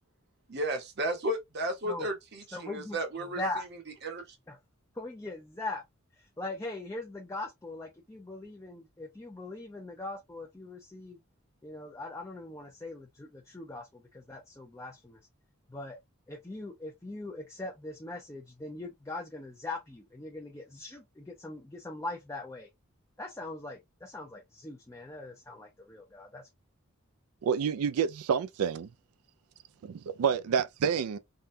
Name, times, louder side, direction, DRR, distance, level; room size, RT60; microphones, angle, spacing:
voice 1, 0.5-3.4 4.0-4.2, right 1 dB, 50° right, 0.8 m, -33 dB
voice 2, 2.5-3.0 3.3-3.6 4.5-4.6 4.9-5.8 6.1-11.2 11.6-15.2 15.7-16.0 16.3-22.7 23.2-26.5, left 2 dB, 15° left, 0.5 m, -41 dB
voice 3, 27.4-28.9 29.8-31.2, right 7 dB, 85° right, 0.3 m, -28 dB
3.7 x 2.2 x 2.6 m
head